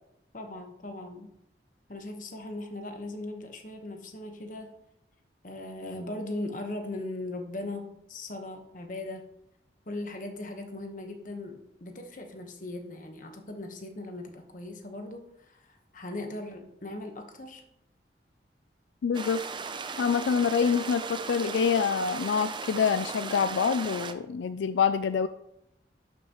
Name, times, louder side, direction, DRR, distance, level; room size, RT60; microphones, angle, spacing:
voice 1, 0.3-1.3 1.9-4.8 5.4-9.2 9.9-17.6, left 2 dB, 45° left, 4 dB, 1.2 m, -39 dB
voice 2, 19.0-19.4 20.0-25.3, left 6 dB, 80° left, 12 dB, 0.3 m, -26 dB
sound 1, 19.1-24.1, right 5 dB, 25° right, 0.5 m, -37 dB
12.0 x 5.9 x 3.0 m, 0.81 s
head